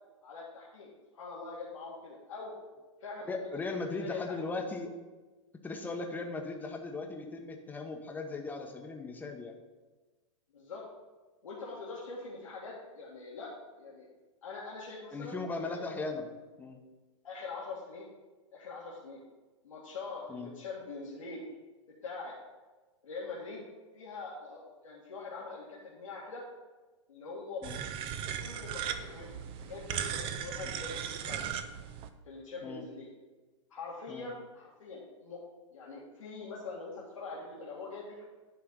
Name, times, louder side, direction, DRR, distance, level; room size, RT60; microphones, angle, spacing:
voice 1, 0.2-2.5 3.0-3.7 4.0-4.4 10.5-10.8 11.4-13.5 13.8-14.1 14.4-15.8 17.2-18.1 18.5-19.2 19.6-21.4 21.9-22.3 23.0-23.6 23.9-26.4 27.1-27.9 28.4-31.5 32.2-33.1 33.7-35.4 35.7-38.2, left 3 dB, 80° left, -6 dB, 1.8 m, -43 dB
voice 2, 3.3-4.9 5.6-9.6 15.1-16.3 16.6-16.8 20.3-20.5 27.6-27.8 30.6-30.7 32.6-32.8 34.1-34.3, left 3 dB, 10° left, 3 dB, 0.9 m, -38 dB
sound 1, 27.6-32.1, right 8 dB, 35° right, 0.6 m, -37 dB
9.6 x 3.4 x 6.7 m, 1.2 s
hypercardioid pair, 120°, 16 cm